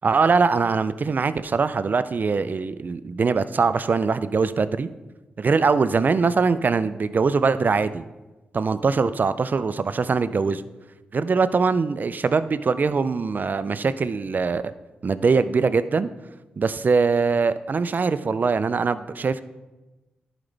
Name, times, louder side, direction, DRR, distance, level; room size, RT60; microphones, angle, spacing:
voice 1, 0.0-4.9 5.4-8.0 8.5-10.6 11.1-14.6 15.0-16.1 16.6-19.4, right 4 dB, 50° right, 14 dB, 0.5 m, -22 dB
11.5 x 5.0 x 3.4 m, 1.1 s
supercardioid pair, 45°, 4 cm